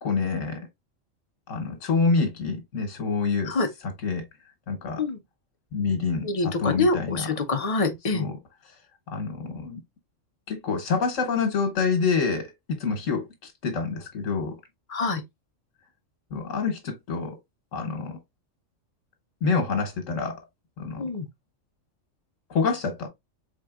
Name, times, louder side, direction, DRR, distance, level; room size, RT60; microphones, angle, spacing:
voice 1, 0.0-0.6 1.5-3.5 4.0-4.2 4.7-5.0 5.7-7.3 8.1-8.4 9.1-9.8 10.5-12.5 12.8-13.2 13.6-14.5 16.3-17.3 17.7-18.2 19.4-20.4 20.8-21.0 22.5-23.1, left 4 dB, 80° left, 1.4 m, -26 dB
voice 2, 6.2-8.3 14.9-15.2 21.0-21.2, left 3 dB, 40° left, 0.6 m, -25 dB
4.3 x 3.7 x 2.3 m
omnidirectional pair, 1.3 m